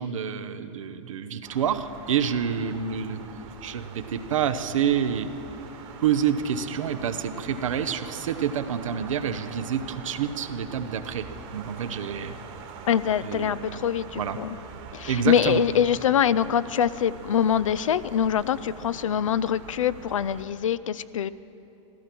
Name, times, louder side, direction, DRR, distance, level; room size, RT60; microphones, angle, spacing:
voice 1, 0.0-3.2 3.6-5.3 6.0-11.3 11.5-12.4 13.2-13.8 14.2-14.4 15.1-15.6, right 8 dB, 80° right, 10 dB, 0.8 m, -28 dB
sound 1, 1.4-20.4, right 5 dB, 50° right, 1.6 m, -43 dB
voice 2, 12.9-14.5 14.9-21.3, left 9 dB, 90° left, 16 dB, 0.4 m, -24 dB
15.0 x 12.5 x 6.0 m, 2.9 s
hypercardioid pair, 110°, 16 cm